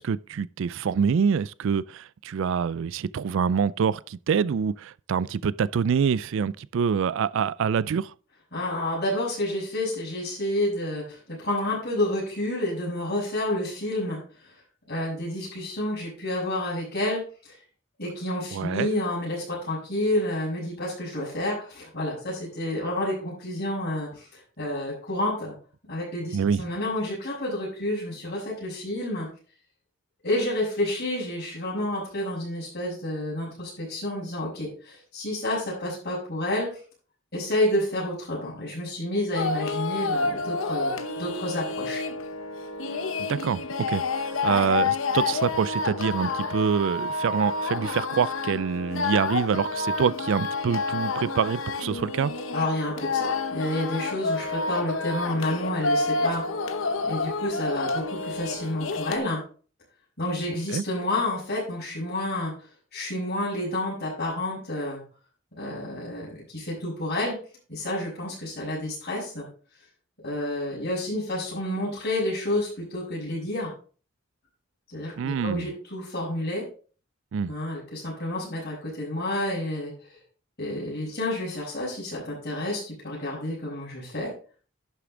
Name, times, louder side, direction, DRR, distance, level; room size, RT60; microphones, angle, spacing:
voice 1, 0.0-8.1 18.5-18.9 26.3-26.6 43.2-52.3 60.7-60.8 75.2-75.7 77.3-77.5, right 6 dB, 65° right, 0.4 m, -26 dB
voice 2, 8.5-14.6 14.9-17.6 18.0-25.5 25.9-29.3 30.2-36.7 37.3-42.0 52.5-56.4 57.1-59.4 60.2-62.5 62.9-65.0 65.6-67.4 67.7-69.5 70.2-73.7 74.9-76.7 77.5-80.2 80.6-84.3, left 1 dB, 50° left, 5.4 m, -29 dB
sound 1, 39.3-59.2, left 3 dB, 70° left, 0.9 m, -29 dB
11.0 x 6.8 x 3.8 m
head